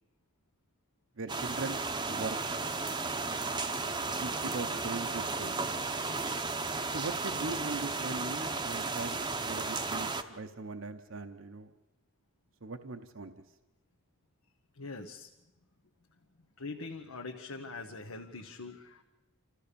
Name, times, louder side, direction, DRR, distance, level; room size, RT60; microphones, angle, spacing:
voice 1, 1.2-1.8 2.1-2.4 4.2-5.6 6.9-11.7 12.6-13.3, right 3 dB, 65° right, 7 dB, 0.8 m, -40 dB
sound 1, 1.3-10.2, right 3 dB, 20° right, 0.7 m, -34 dB
voice 2, 14.8-15.3 16.6-19.0, left 3 dB, 80° left, 3 dB, 1.2 m, -43 dB
27.5 x 14.5 x 6.8 m, 1.0 s
head